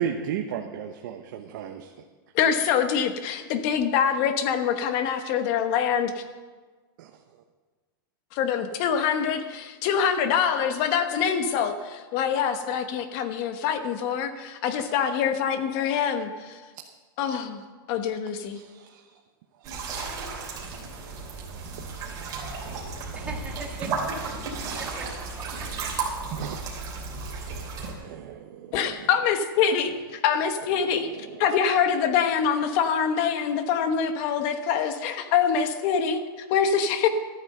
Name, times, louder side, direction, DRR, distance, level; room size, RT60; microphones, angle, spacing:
voice 1, 0.0-1.9 7.0-7.1 14.8-14.9 18.5-19.1 19.6-20.5 22.2-22.4 24.5-24.8 26.4-26.6 27.4-27.6 28.0-29.1 31.1-31.4 34.8-34.9, right 8 dB, 55° right, 4 dB, 1.0 m, -36 dB
voice 2, 2.3-6.2 8.3-16.6 17.2-17.6 17.9-18.6 28.7-31.1 31.4-37.1, left 7 dB, 40° left, 8 dB, 1.2 m, -25 dB
sound 1, 19.6-27.9, right 4 dB, 30° right, 3.1 m, -34 dB
voice 3, 23.1-24.3 24.7-26.2, right 4 dB, 10° right, -1 dB, 1.9 m, -41 dB
14.0 x 9.5 x 6.7 m, 1.4 s
supercardioid pair, 160°, 12 cm